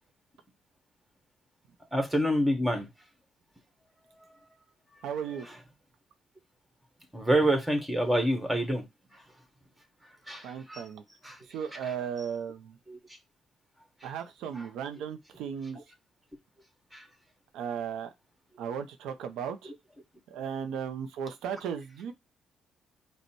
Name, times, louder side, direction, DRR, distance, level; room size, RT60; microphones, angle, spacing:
voice 1, 1.9-2.9 5.4-5.6 7.1-8.9 10.3-10.8 11.2-11.3 11.7-11.8 12.9-13.0 14.6-14.7 16.9-17.0 19.6-19.7, right 1 dB, 10° right, 1.6 m, -27 dB
voice 2, 5.0-5.5 10.4-11.0 11.5-12.7 14.0-15.8 17.5-18.1 18.6-19.7 20.3-22.1, right 7 dB, 90° right, 0.6 m, -36 dB
5.3 x 2.2 x 4.4 m
cardioid pair, 90°, 0 cm